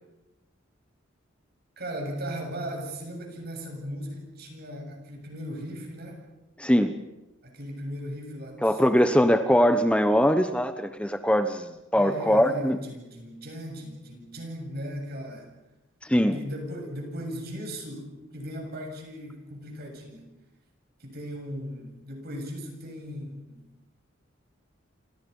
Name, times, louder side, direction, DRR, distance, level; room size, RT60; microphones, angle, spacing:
voice 1, 1.8-6.2 7.4-8.8 9.1-9.2 11.9-15.5 16.3-20.3 21.0-23.7, equal, 55° right, 3 dB, 7.5 m, -37 dB
voice 2, 6.6-6.9 8.6-12.8 16.1-16.4, equal, 5° left, 9 dB, 0.9 m, -22 dB
28.5 x 27.0 x 5.5 m, 1.0 s
head